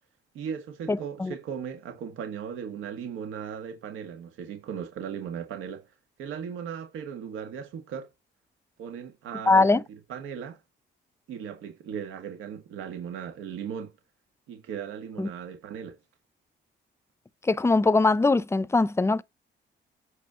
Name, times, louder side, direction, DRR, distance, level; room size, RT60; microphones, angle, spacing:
voice 1, 0.3-5.9 6.2-8.1 8.8-10.6 11.3-13.9 14.5-16.0, right 8 dB, 85° right, 1.8 m, -37 dB
voice 2, 0.9-1.3 9.5-9.8 15.2-15.3 17.5-19.2, left 3 dB, 15° left, 0.6 m, -22 dB
8.4 x 4.2 x 5.2 m
cardioid pair, 90°, 20 cm